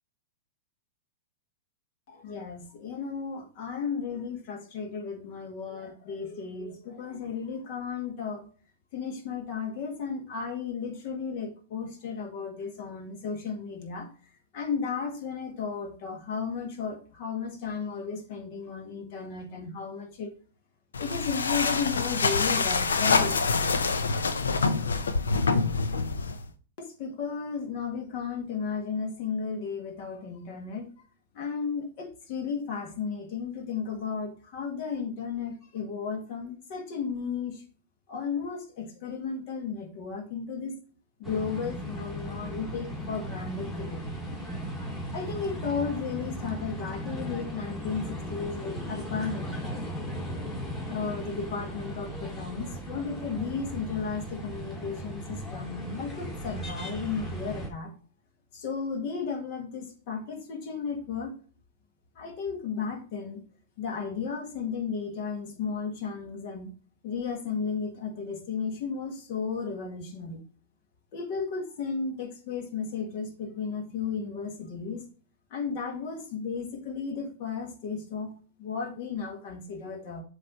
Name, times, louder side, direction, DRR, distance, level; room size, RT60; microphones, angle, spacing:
voice 1, 2.1-8.4 8.9-14.1 14.5-20.3 21.0-23.5 26.8-30.9 31.3-37.6 38.1-40.8 41.2-44.0 45.1-50.1 50.9-57.9 58.5-61.3 62.2-63.4 63.8-66.7 67.0-70.4 71.1-75.0 75.5-78.3 78.6-80.2, left 5 dB, 55° left, 3 dB, 1.8 m, -34 dB
sound 1, 20.9-26.5, left 4 dB, 90° left, 0.6 m, -26 dB
sound 2, 41.2-57.7, equal, 15° left, 2.4 m, -37 dB
7.6 x 3.3 x 4.2 m, 0.41 s
hypercardioid pair, 115°, 0 cm